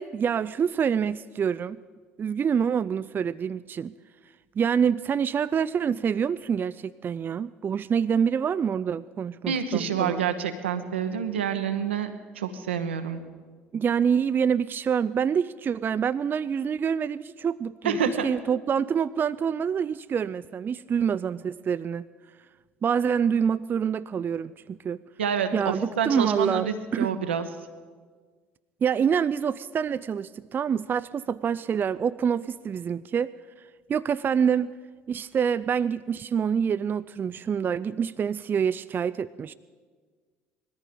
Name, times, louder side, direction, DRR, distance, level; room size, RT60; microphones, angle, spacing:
voice 1, 0.0-1.8 2.2-3.9 4.6-10.2 13.7-22.0 22.8-25.0 25.5-27.2 28.8-33.3 33.9-34.7 35.1-39.5, right 7 dB, 35° right, 15 dB, 0.4 m, -26 dB
voice 2, 9.5-13.2 17.8-18.3 25.2-27.5, right 7 dB, 85° right, 8 dB, 1.0 m, -28 dB
19.5 x 14.0 x 5.2 m, 1.5 s
hypercardioid pair, 60°, 6 cm